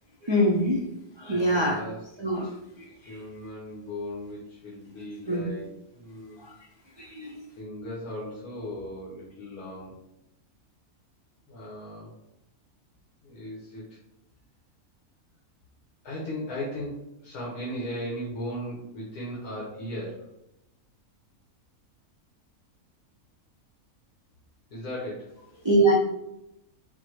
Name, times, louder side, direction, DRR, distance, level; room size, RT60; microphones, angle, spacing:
voice 1, 0.2-0.8 1.2-1.8 2.2-2.5 2.8-3.2 5.3-5.4 6.4-6.5 7.0-7.4 25.6-26.0, right 1 dB, 40° right, -5 dB, 0.4 m, -24 dB
voice 2, 1.3-2.0 2.4-2.6 3.1-6.4 6.9-7.1 7.6-9.9 11.5-12.1 13.2-14.0 16.0-20.3 24.7-25.3, left 1 dB, 85° left, -6 dB, 1.6 m, -37 dB
4.4 x 2.2 x 4.5 m, 0.86 s
omnidirectional pair, 1.6 m